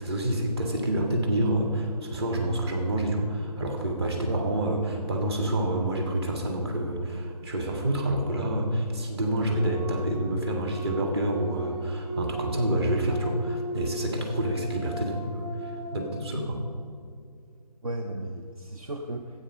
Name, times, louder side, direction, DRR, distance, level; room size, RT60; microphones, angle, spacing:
voice 1, 0.0-16.6, right 1 dB, 40° right, 2 dB, 1.9 m, -28 dB
voice 2, 4.0-4.4 9.7-10.1 17.8-19.4, right 1 dB, 60° right, 4 dB, 0.9 m, -35 dB
sound 1, 9.5-16.1, right 1 dB, 15° right, 1.8 m, -37 dB
12.0 x 8.6 x 5.5 m, 2.2 s
figure-of-eight pair, 155°, 21 cm